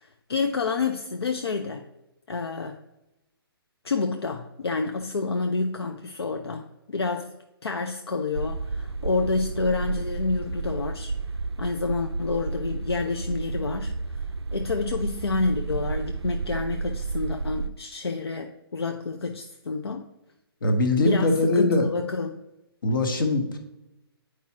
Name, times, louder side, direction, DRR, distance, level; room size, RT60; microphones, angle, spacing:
voice 1, 0.0-1.9 2.3-2.8 3.8-7.4 7.6-11.1 11.6-14.2 14.5-20.1 21.0-22.4, left 4 dB, 75° left, 5 dB, 0.5 m, -29 dB
sound 1, 8.3-17.7, right 4 dB, 85° right, 0.4 m, -31 dB
voice 2, 20.6-21.9 22.8-23.6, left 2 dB, 55° left, 5 dB, 1.1 m, -22 dB
9.1 x 4.8 x 2.9 m, 0.95 s
figure-of-eight pair, 135°, 13 cm